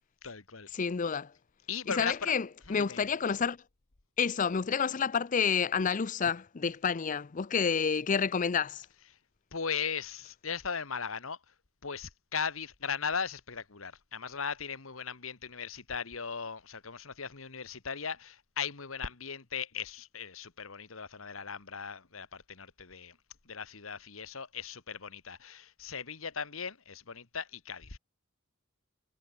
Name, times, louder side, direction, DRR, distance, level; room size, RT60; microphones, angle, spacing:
voice 1, 0.2-0.7 1.7-2.3 2.7-3.1 9.5-11.4 11.8-23.2 23.5-28.0, left 6 dB, 85° left, 1.7 m, -38 dB
voice 2, 0.7-1.3 2.0-3.6 4.2-8.8, left 6 dB, 40° left, 0.5 m, -29 dB
head